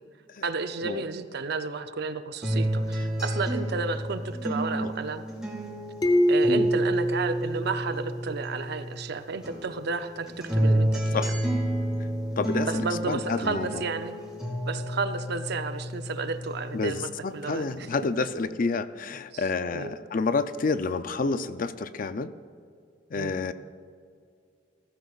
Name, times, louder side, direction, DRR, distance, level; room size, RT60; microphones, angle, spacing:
voice 1, 0.4-5.3 6.3-11.3 12.6-14.2 14.6-17.9 19.3-19.4 19.7-19.9 23.1-23.3, right 4 dB, 60° right, 9 dB, 0.6 m, -32 dB
sound 1, 2.4-9.1 9.4-17.1 17.5-18.4, right 1 dB, 5° right, 2.7 m, -31 dB
sound 2, 6.0-8.6, equal, 20° left, 0.9 m, -25 dB
voice 2, 12.4-13.8 16.7-22.3 23.1-23.5, left 4 dB, 50° left, 12 dB, 0.5 m, -29 dB
16.0 x 14.5 x 2.4 m, 2.3 s
head